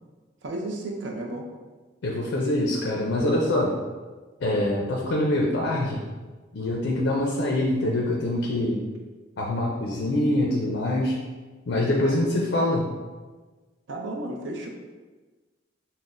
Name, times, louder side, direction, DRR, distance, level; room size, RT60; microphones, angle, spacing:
voice 1, 0.4-1.5 12.0-12.2 13.9-14.7, right 1 dB, 80° right, 1 dB, 0.5 m, -33 dB
voice 2, 2.0-3.8 4.4-6.0 6.5-8.8 9.4-11.2 11.7-12.9, left 1 dB, 85° left, -1 dB, 0.5 m, -24 dB
5.7 x 2.0 x 2.5 m, 1.3 s
head